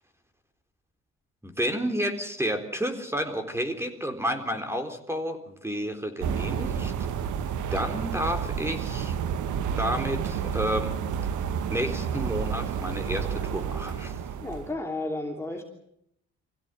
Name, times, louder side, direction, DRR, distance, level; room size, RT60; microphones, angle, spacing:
voice 1, 1.4-7.1 7.7-9.2 9.8-11.0 11.7-14.2, equal, 10° right, 6 dB, 4.0 m, -30 dB
sound 1, 6.2-14.7, right 7 dB, 80° right, 1.5 m, -30 dB
voice 2, 14.4-15.6, left 2 dB, 10° left, 1 dB, 3.0 m, -32 dB
25.5 x 16.0 x 9.2 m, 0.74 s
cardioid pair, 90°, 30 cm